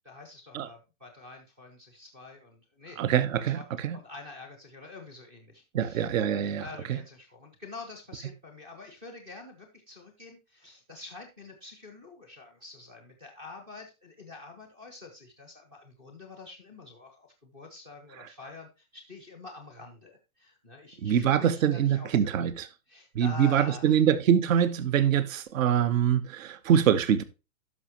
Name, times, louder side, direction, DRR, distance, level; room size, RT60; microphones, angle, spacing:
voice 1, 0.0-3.0 3.6-3.7 3.9-22.4 22.9-24.0, left 3 dB, 5° right, 0.3 m, -47 dB
voice 2, 3.0-4.0 5.7-7.0 18.2-18.3 21.0-22.7 23.1-27.2, right 9 dB, 65° right, 1.1 m, -24 dB
11.0 x 6.3 x 2.9 m
supercardioid pair, 160°, 43 cm